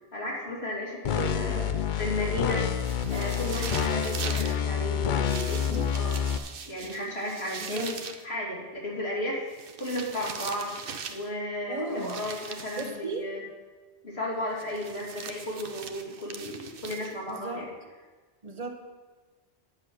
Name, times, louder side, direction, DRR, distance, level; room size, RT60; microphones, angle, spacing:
voice 1, 0.1-1.6 2.0-2.7 3.1-6.2 6.7-9.4 9.8-10.8 11.1-13.4 14.0-17.7, left 1 dB, 75° left, -4 dB, 3.1 m, -34 dB
sound 1, 1.0-6.4, left 8 dB, 55° left, 0.7 m, -28 dB
voice 2, 1.1-1.8 7.6-7.9 11.7-12.2 12.8-13.3 17.3-17.7 18.4-18.7, right 3 dB, 35° right, 3 dB, 1.3 m, -36 dB
sound 2, 2.6-4.6 5.3-8.2 9.5-11.3 12.0-13.0 14.6-17.4, right 6 dB, 60° right, 0.9 m, -40 dB
9.8 x 7.5 x 6.2 m, 1.4 s
omnidirectional pair, 1.1 m